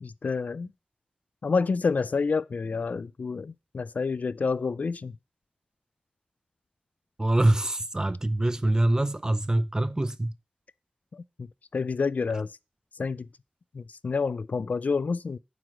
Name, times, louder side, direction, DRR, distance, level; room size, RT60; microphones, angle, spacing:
voice 1, 0.0-0.7 1.4-5.1 11.1-11.5 11.7-12.5 13.0-13.3 13.7-15.4, left 4 dB, 65° left, 0.4 m, -28 dB
voice 2, 7.2-10.3, right 1 dB, 25° right, 0.5 m, -24 dB
7.8 x 4.9 x 5.9 m
wide cardioid pair, 95°, 3 cm